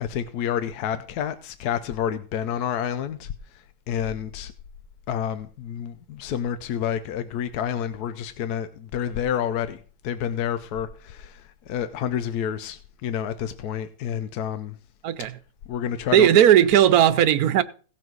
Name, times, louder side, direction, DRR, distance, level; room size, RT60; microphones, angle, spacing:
voice 1, 0.0-3.3 3.9-4.5 5.1-14.8 15.7-16.3, left 9 dB, 75° left, 1.2 m, -29 dB
voice 2, 16.1-17.6, right 11 dB, 70° right, 1.1 m, -16 dB
17.0 x 5.8 x 4.6 m
omnidirectional pair, 1.7 m